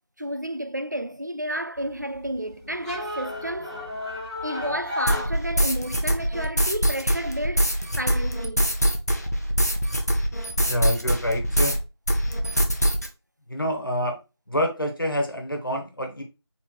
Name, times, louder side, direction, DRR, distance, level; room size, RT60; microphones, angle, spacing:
voice 1, 0.2-3.8 4.4-7.7 8.0-8.7, right 1 dB, 40° right, 0.3 m, -31 dB
sound 1, 1.8-6.1, left 2 dB, 5° right, 2.4 m, -34 dB
sound 2, 5.1-11.8 12.1-13.1, equal, 35° left, 0.7 m, -23 dB
voice 2, 10.6-11.8 13.5-14.2 14.5-16.2, equal, 55° left, 1.4 m, -26 dB
4.3 x 4.0 x 3.1 m
figure-of-eight pair, 180°, 14 cm